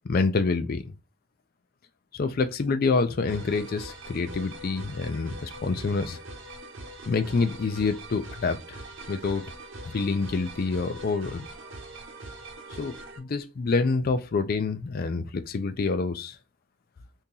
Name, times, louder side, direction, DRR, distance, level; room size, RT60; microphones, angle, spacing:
voice 1, 0.1-0.9 2.1-6.2 7.1-8.8 9.1-9.4 9.9-11.5 12.8-16.4, left 4 dB, 45° left, 0.4 m, -27 dB
sound 1, 3.3-13.2, right 1 dB, 60° right, 0.9 m, -42 dB
2.8 x 2.7 x 3.7 m
head